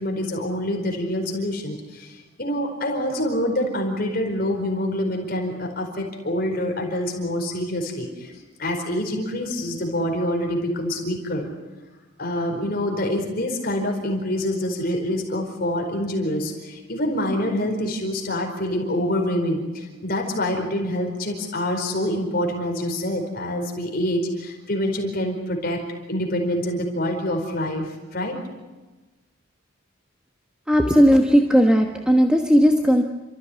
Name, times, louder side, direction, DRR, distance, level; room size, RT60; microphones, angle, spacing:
voice 1, 0.0-8.3 8.6-11.5 12.2-25.8 26.1-28.4, left 1 dB, 45° left, 2 dB, 4.7 m, -26 dB
voice 2, 30.7-33.0, equal, 5° right, 2 dB, 1.3 m, -16 dB
29.5 x 14.5 x 9.8 m, 1.2 s
head